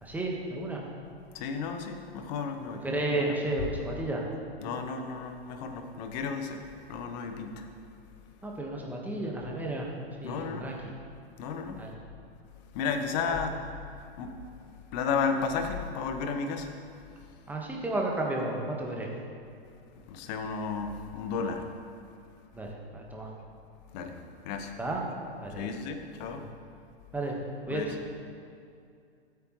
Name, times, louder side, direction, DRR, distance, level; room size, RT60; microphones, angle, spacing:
voice 1, 0.0-0.8 2.8-4.2 8.4-9.9 10.2-10.8 11.8-11.9 13.3-13.4 17.5-19.1 22.5-23.3 24.8-25.0 25.4-25.7 26.3-26.4 27.1-27.4 27.7-28.0, right 2 dB, 5° right, -1 dB, 1.4 m, -32 dB
voice 2, 1.3-2.8 3.1-3.3 4.6-7.7 10.2-10.7 11.4-11.8 12.7-13.6 13.9-16.8 17.2-17.5 19.9-21.7 23.9-24.8 25.5-26.5 27.7-27.9, left 5 dB, 40° left, 6 dB, 1.1 m, -33 dB
14.0 x 8.6 x 3.2 m, 2.4 s
hypercardioid pair, 115°, 31 cm